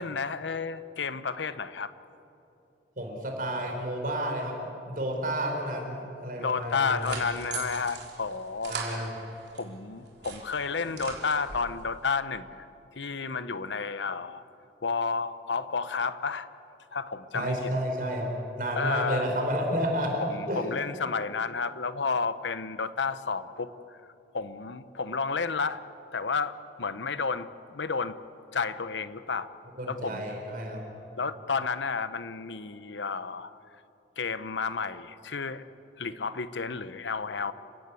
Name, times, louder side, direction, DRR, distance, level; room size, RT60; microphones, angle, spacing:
voice 1, 0.0-1.9 6.4-9.1 9.6-12.7 13.0-14.4 14.8-16.5 16.9-17.7 18.8-19.3 20.3-23.7 24.3-25.8 26.1-28.2 28.5-29.5 29.9-30.3 31.2-33.5 34.2-35.6 36.0-37.5, left 5 dB, 80° left, 13 dB, 0.9 m, -31 dB
voice 2, 3.0-4.5 4.8-7.2 8.7-9.3 17.3-18.3 18.6-20.6 29.7-30.8, equal, 50° right, 2 dB, 4.7 m, -31 dB
sound 1, 6.6-9.7 10.0-11.8, right 5 dB, 65° right, 3.8 m, -40 dB
29.5 x 16.5 x 8.4 m, 2.9 s
head